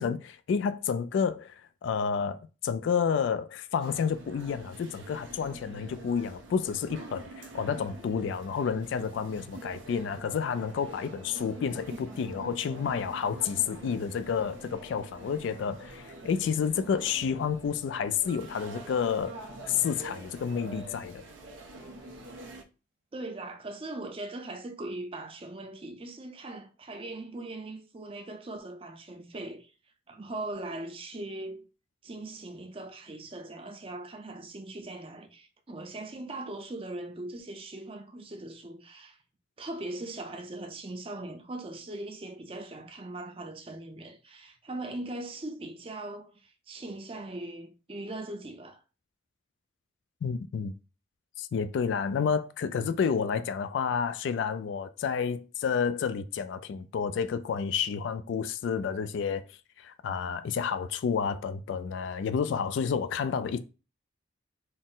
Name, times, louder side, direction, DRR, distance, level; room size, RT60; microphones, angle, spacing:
voice 1, 0.0-19.4 19.6-21.2 50.2-50.7 51.4-59.5 59.8-63.6, left 6 dB, 70° left, 0.3 m, -30 dB
sound 1, 3.8-22.6, right 2 dB, 85° right, 0.7 m, -46 dB
sound 2, 18.3-20.9, right 6 dB, 55° right, 1.3 m, -56 dB
voice 2, 23.1-29.7 30.1-31.6 32.0-39.2 39.6-48.8, right 2 dB, 30° right, 0.5 m, -40 dB
4.1 x 2.0 x 3.7 m
head